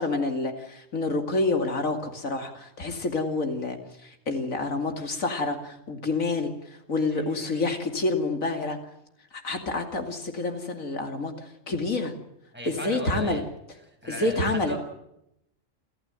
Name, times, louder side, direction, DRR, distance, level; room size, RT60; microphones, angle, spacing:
voice 1, 0.0-3.8 4.0-6.5 6.9-8.8 9.3-12.1 12.6-13.4 14.1-14.7, left 2 dB, 85° left, 5 dB, 2.9 m, -28 dB
voice 2, 7.1-7.6 12.5-13.5 13.8-14.8, right 1 dB, 10° right, 1 dB, 6.6 m, -37 dB
29.0 x 14.0 x 9.1 m, 0.82 s
omnidirectional pair, 1.4 m